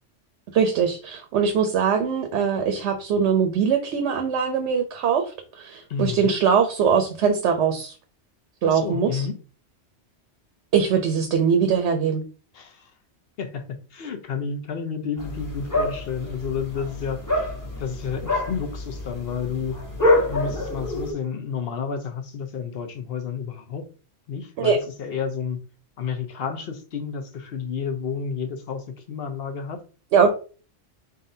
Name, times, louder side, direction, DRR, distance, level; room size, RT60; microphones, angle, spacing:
voice 1, 0.5-7.9 8.6-9.3 10.7-12.2 24.6-24.8 30.1-30.3, right 6 dB, 75° right, 6 dB, 0.9 m, -22 dB
voice 2, 5.9-6.3 8.6-9.3 12.5-12.9 13.4-13.6 13.9-17.5 17.8-19.7 20.3-23.8 24.3-25.6 26.0-29.8, left 6 dB, 60° left, 6 dB, 0.9 m, -30 dB
sound 1, 15.2-21.1, left 1 dB, 15° left, 1.3 m, -26 dB
4.1 x 3.8 x 2.7 m, 0.37 s
omnidirectional pair, 1.2 m